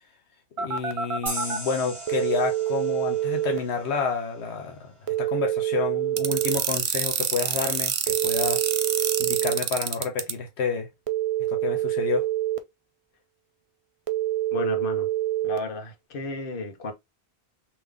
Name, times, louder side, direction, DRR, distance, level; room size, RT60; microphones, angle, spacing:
voice 1, 0.6-8.7 9.2-10.9 11.5-12.3, left 5 dB, 85° left, 1.1 m, -29 dB
Telephone, 0.6-1.6 2.1-3.6 5.1-6.6 8.1-9.6 11.1-12.6 14.1-15.6, right 13 dB, 50° right, 0.4 m, -26 dB
sound 1, 1.3-4.6, right 1 dB, 30° right, 1.4 m, -38 dB
sound 2, 6.2-10.3, right 9 dB, 65° right, 0.8 m, -26 dB
voice 2, 14.5-15.1 15.4-16.9, left 3 dB, 55° left, 1.1 m, -33 dB
3.6 x 3.0 x 3.3 m
omnidirectional pair, 1.1 m